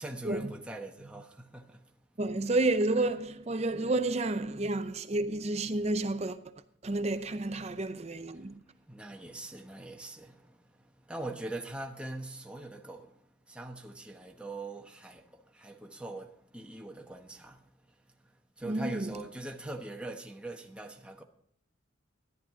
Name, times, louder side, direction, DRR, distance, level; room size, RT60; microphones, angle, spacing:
voice 1, 0.0-2.0 8.2-21.2, right 2 dB, 5° right, 1.0 m, -43 dB
voice 2, 2.2-6.4 6.8-8.6 18.6-19.1, right 2 dB, 30° right, 0.6 m, -30 dB
12.0 x 11.5 x 3.6 m
head